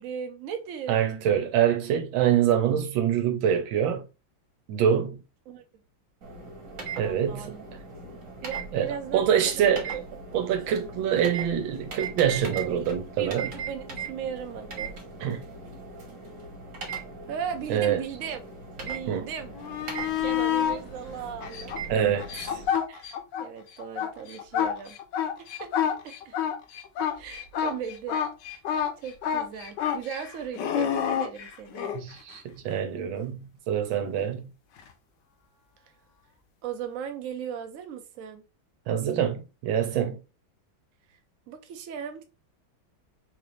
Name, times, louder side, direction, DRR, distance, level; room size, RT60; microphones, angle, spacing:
voice 1, 0.0-1.0 5.5-5.6 7.0-7.6 8.4-9.3 9.6-9.8 12.5-12.8 13.2-15.0 17.3-18.4 18.8-19.6 20.2-21.7 22.9-23.1 23.4-25.0 25.4-26.4 27.1-28.2 29.0-32.0 36.6-38.4 41.5-42.2, right 8 dB, 70° right, 0.7 m, -37 dB
voice 2, 0.9-4.0 4.7-5.2 7.0-7.5 8.7-10.0 10.3-13.5 15.2-15.4 17.7-18.0 19.1-19.3 21.9-22.6 31.9-34.5 38.9-40.2, right 9 dB, 85° right, 1.5 m, -25 dB
sound 1, 6.2-22.7, right 4 dB, 50° right, 1.5 m, -39 dB
sound 2, 19.6-20.8 21.4-23.5 23.8-32.0 34.8-34.9, left 9 dB, 75° left, 1.2 m, -28 dB
4.0 x 2.6 x 3.0 m
omnidirectional pair, 2.1 m